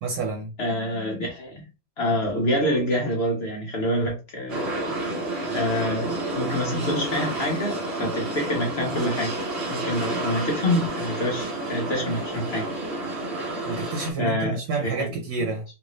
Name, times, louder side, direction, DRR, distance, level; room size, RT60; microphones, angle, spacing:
voice 1, 0.0-0.5 13.7-15.6, right 4 dB, 70° right, 1.4 m, -29 dB
voice 2, 0.6-1.6 2.0-4.6 5.5-9.4 9.7-12.7 14.2-15.5, equal, 50° left, 0.8 m, -26 dB
sound 1, 4.5-14.1, right 2 dB, 45° right, 0.9 m, -30 dB
3.3 x 2.5 x 3.0 m
omnidirectional pair, 2.0 m